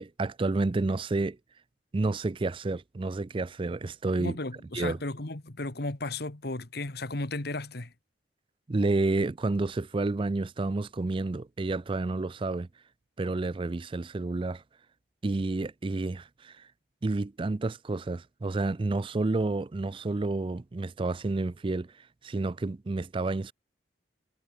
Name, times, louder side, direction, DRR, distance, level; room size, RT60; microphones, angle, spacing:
voice 1, 0.0-1.4 1.9-4.4 4.7-5.0 8.7-12.7 13.2-14.6 15.2-16.7 17.0-23.5, right 2 dB, 30° right, 0.4 m, -30 dB
voice 2, 4.2-7.9, left 2 dB, 60° left, 1.8 m, -35 dB
head